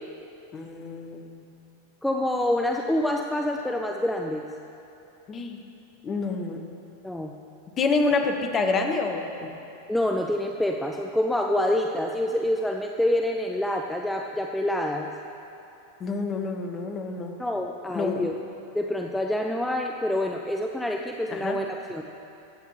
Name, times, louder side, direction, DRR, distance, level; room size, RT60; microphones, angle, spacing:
voice 1, 0.5-1.4 5.3-5.6 6.0-6.6 7.8-9.5 16.0-17.4 17.9-18.3 21.3-21.6, left 3 dB, 25° left, 4 dB, 1.0 m, -27 dB
voice 2, 2.0-4.5 7.0-7.3 9.9-15.1 17.4-18.3 18.7-22.0, left 1 dB, 5° left, 2 dB, 0.5 m, -27 dB
22.0 x 8.1 x 3.2 m, 2.8 s
figure-of-eight pair, 90°, 0 cm